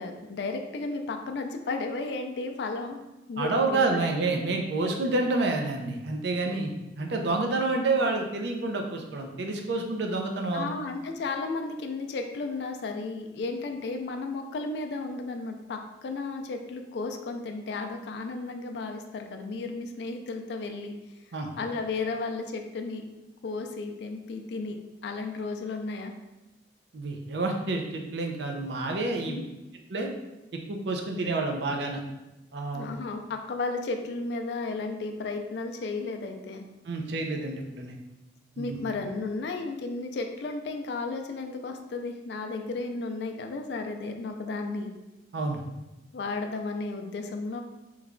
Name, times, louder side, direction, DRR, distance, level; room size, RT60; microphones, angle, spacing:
voice 1, 0.0-3.0 3.3-3.8 4.9-5.0 6.3-6.6 10.5-20.9 21.6-23.0 23.4-24.8 25.0-26.1 29.3-29.4 32.7-36.6 38.6-44.9 46.1-47.6, left 3 dB, 65° left, 4 dB, 0.3 m, -34 dB
voice 2, 3.4-10.7 21.3-21.5 26.9-29.4 29.9-30.1 30.7-32.0 32.5-32.9 36.9-37.9 38.6-38.8 45.3-45.6, right 3 dB, 70° right, 2 dB, 0.5 m, -28 dB
3.1 x 2.2 x 3.6 m, 1.0 s
head